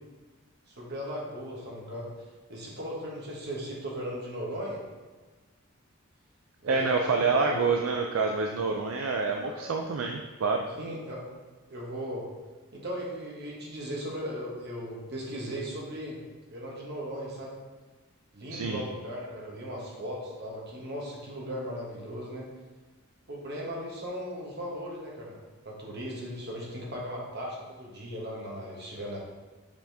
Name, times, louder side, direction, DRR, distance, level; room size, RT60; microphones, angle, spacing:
voice 1, 0.7-4.8 6.6-7.5 9.4-9.7 10.7-11.2 11.7-12.3 12.7-16.2 16.5-17.5 18.3-22.5 23.3-25.4 25.6-29.2, equal, 45° right, -3 dB, 1.4 m, -37 dB
voice 2, 6.7-10.7 18.5-18.8, right 4 dB, 65° right, 3 dB, 0.4 m, -27 dB
6.8 x 4.3 x 3.4 m, 1.3 s
head